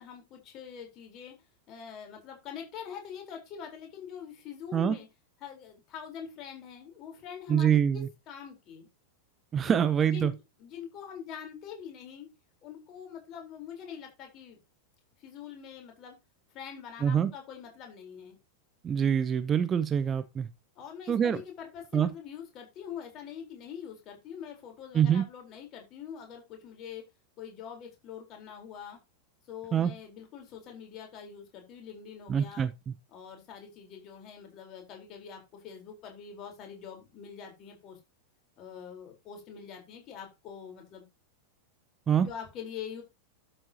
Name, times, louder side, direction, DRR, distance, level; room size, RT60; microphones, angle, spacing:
voice 1, 0.0-1.4 1.7-5.1 5.4-8.9 9.6-12.3 12.6-14.6 15.2-16.1 16.5-18.4 20.7-27.1 27.4-29.0 29.5-32.7 33.1-38.0 38.6-41.0 42.2-43.0, left 8 dB, 35° left, 4.2 m, -44 dB
voice 2, 7.5-8.1 9.5-10.3 17.0-17.3 18.8-20.5 21.1-21.4 21.9-22.1 24.9-25.2 29.7-29.9 32.3-32.9 42.1-42.3, right 8 dB, 25° right, 0.7 m, -25 dB
12.0 x 7.9 x 2.9 m
figure-of-eight pair, 90°, 0 cm